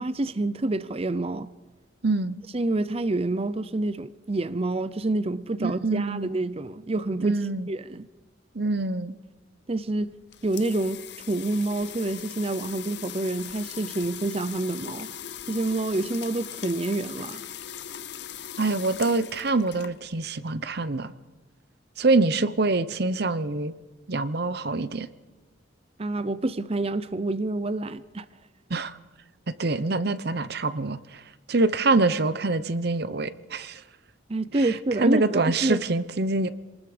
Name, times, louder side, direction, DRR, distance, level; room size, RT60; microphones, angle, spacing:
voice 1, 0.0-1.5 2.5-7.4 7.7-8.1 9.7-10.1 10.4-11.0 11.3-15.1 15.5-17.4 26.0-28.2 34.3-35.8, right 2 dB, 30° right, 0.6 m, -27 dB
voice 2, 2.0-2.4 5.6-6.3 7.2-7.7 8.5-9.2 18.6-21.1 22.0-23.7 24.1-25.1 28.7-28.9 29.6-31.2 31.5-33.8 34.5-36.5, right 3 dB, 55° right, 0.9 m, -25 dB
sound 1, 10.0-20.3, left 9 dB, 65° left, 0.8 m, -40 dB
27.0 x 20.0 x 5.1 m
head